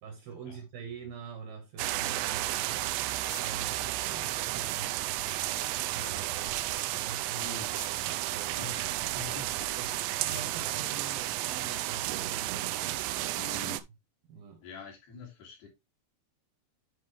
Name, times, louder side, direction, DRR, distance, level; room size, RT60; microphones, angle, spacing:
voice 1, 0.0-3.0 3.3-5.3 5.9-6.7 7.0-7.5 8.0-8.7 9.8-12.7 13.5-13.6 14.3-14.6, right 6 dB, 65° right, 2.6 m, -45 dB
sound 1, 1.8-13.8, right 16 dB, 85° right, 2.7 m, -32 dB
sound 2, 2.5-11.9, left 7 dB, 85° left, 1.5 m, -57 dB
voice 2, 5.3-5.6 5.9-6.3 7.3-7.7 8.6-10.2 13.3-13.8 14.6-15.7, left 5 dB, 60° left, 4.2 m, -46 dB
10.5 x 5.0 x 3.1 m
omnidirectional pair, 5.4 m